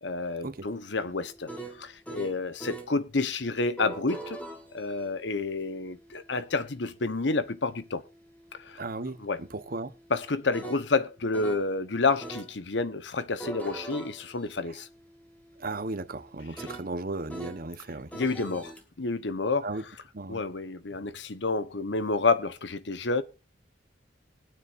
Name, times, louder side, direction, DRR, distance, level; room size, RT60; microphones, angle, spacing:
voice 1, 0.0-1.5 1.8-4.4 4.7-8.0 8.6-8.8 9.2-9.4 10.1-14.9 18.1-19.7 20.3-23.2, left 3 dB, 75° left, 1.0 m, -29 dB
sound 1, 0.5-2.9 3.6-11.7 12.2-12.5 13.2-17.6 18.1-18.8, right 2 dB, 10° left, 2.2 m, -44 dB
voice 2, 8.8-9.9 14.7-14.8 15.6-18.1 19.6-19.8 20.1-20.4, right 2 dB, 55° right, 1.0 m, -36 dB
21.0 x 9.4 x 2.6 m
head